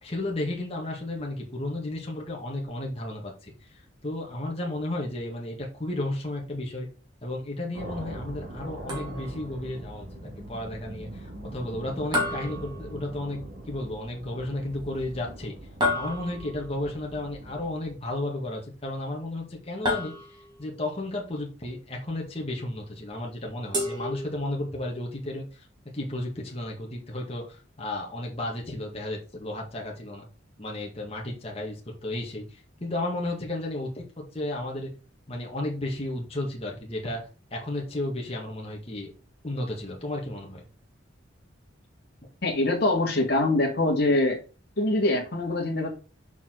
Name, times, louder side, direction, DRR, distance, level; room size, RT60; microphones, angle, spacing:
voice 1, 0.0-3.5 4.0-6.9 7.2-10.1 10.5-11.2 11.5-15.6 15.9-20.1 20.6-25.7 25.9-30.3 30.6-34.9 35.3-37.2 37.5-39.1 39.4-40.6, left 1 dB, 30° left, -1 dB, 1.9 m, -33 dB
sound 1, 7.7-18.1, right 1 dB, 55° right, 2.2 m, -42 dB
sound 2, 8.9-9.5 12.1-13.4 15.8-16.7 19.8-20.7 23.7-24.8, left 1 dB, 20° right, 2.3 m, -31 dB
voice 2, 42.4-44.4 44.8-45.9, left 2 dB, 55° left, 1 dB, 2.3 m, -24 dB
6.9 x 4.9 x 3.9 m, 0.35 s
head